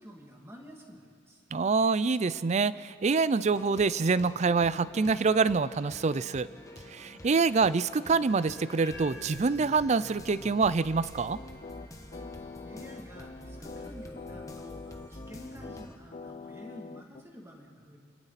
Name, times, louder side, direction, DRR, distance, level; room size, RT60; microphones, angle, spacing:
voice 1, 0.0-1.4 12.4-18.0, equal, 15° right, -1 dB, 2.5 m, -49 dB
voice 2, 1.5-6.5 6.9-11.4, right 4 dB, 35° right, 17 dB, 0.4 m, -26 dB
sound 1, 3.5-16.0, left 1 dB, 15° left, 1.2 m, -47 dB
sound 2, 8.3-12.2, left 1 dB, 60° left, 3.6 m, -51 dB
sound 3, 11.3-17.2, left 4 dB, 35° left, 0.4 m, -44 dB
29.0 x 21.5 x 4.2 m, 2.3 s
head